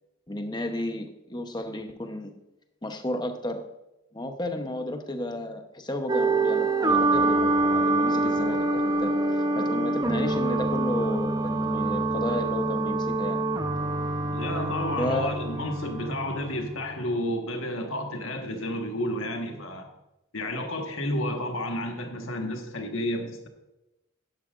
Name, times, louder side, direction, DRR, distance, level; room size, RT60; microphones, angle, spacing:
voice 1, 0.3-2.3 2.8-3.6 4.1-13.4 15.0-15.5, left 1 dB, 20° left, 6 dB, 0.8 m, -32 dB
sound 1, 6.1-17.1, right 2 dB, 20° right, 0.6 m, -26 dB
voice 2, 14.3-19.9 20.3-23.5, left 1 dB, 70° left, 4 dB, 1.4 m, -31 dB
11.5 x 11.0 x 2.5 m, 0.95 s
head